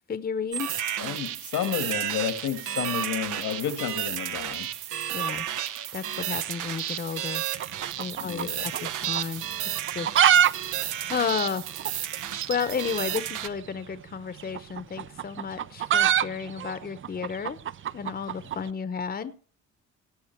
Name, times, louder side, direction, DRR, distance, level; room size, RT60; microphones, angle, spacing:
voice 1, 0.1-0.8 5.1-5.5 5.9-7.4 8.0-9.4 9.9-10.1 11.1-11.7 12.5-17.6 17.9-19.4, left 6 dB, 30° left, 13 dB, 0.9 m, -32 dB
sound 1, 0.5-13.5, right 11 dB, 85° right, 0.9 m, -32 dB
voice 2, 1.0-4.7 8.2-8.7, left 9 dB, 80° left, 10 dB, 1.7 m, -31 dB
sound 2, 7.6-8.9 9.2-9.3 9.8-10.5 10.8-10.9 11.1-11.2 11.8-11.9 13.1-13.3 14.4-18.6, right 9 dB, 45° right, 0.5 m, -23 dB
18.0 x 7.4 x 4.5 m, 0.40 s
cardioid pair, 90°, 30 cm